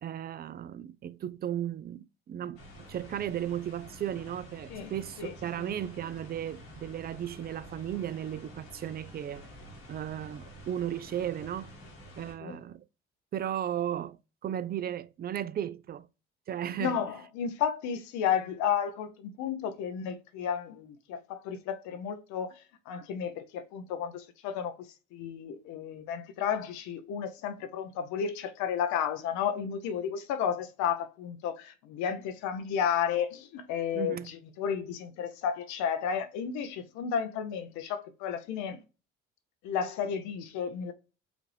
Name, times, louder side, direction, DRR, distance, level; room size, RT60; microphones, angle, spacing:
voice 1, 0.0-9.5 9.9-11.7 12.2-12.8 13.3-16.1 16.5-17.0 33.9-34.3, right 10 dB, 30° right, 0.4 m, -35 dB
sound 1, 2.6-12.3, equal, 85° left, 1.6 m, -49 dB
voice 2, 5.2-5.7 12.4-12.6 16.8-38.8 39.6-40.9, left 8 dB, 70° left, 0.6 m, -32 dB
5.0 x 2.5 x 3.2 m
hypercardioid pair, 60°, 30 cm